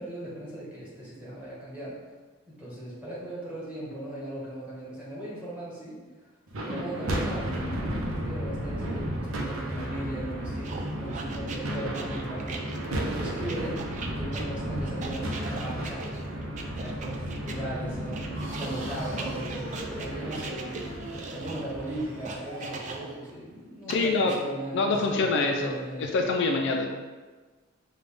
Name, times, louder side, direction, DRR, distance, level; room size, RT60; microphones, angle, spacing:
voice 1, 0.0-2.0 2.5-6.3 6.6-16.3 16.8-18.2 18.6-21.0 21.3-26.2, right 1 dB, 5° right, -9 dB, 1.3 m, -38 dB
sound 1, 6.5-22.9, right 1 dB, 90° right, 0.7 m, -33 dB
sound 2, 10.6-17.6 18.1-23.3 23.9-24.4, right 3 dB, 35° right, 0.4 m, -40 dB
sound 3, 18.3-23.3, right 1 dB, 65° right, 1.5 m, -43 dB
voice 2, 23.9-24.3 24.7-25.7 26.1-26.9, left 3 dB, 60° left, 2 dB, 0.4 m, -25 dB
5.2 x 2.3 x 3.4 m, 1.3 s
head